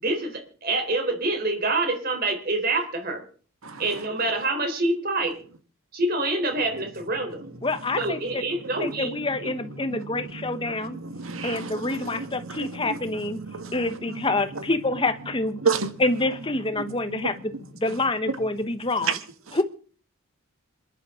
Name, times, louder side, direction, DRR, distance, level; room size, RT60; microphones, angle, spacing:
voice 1, 0.0-3.2 3.8-5.4 5.9-7.4 8.0-9.5, right 2 dB, 45° right, 4.0 m, -26 dB
voice 2, 7.6-8.4 8.8-11.0 11.4-13.4 13.7-15.6 16.0-19.2 19.5-19.6, left 2 dB, 25° left, 1.1 m, -27 dB
voice 3, 10.6-13.0 13.3-13.8 14.1-14.2 15.6-15.9 17.1-17.3 19.0-19.2, right 5 dB, 80° right, 1.8 m, -30 dB
27.0 x 11.0 x 3.8 m
head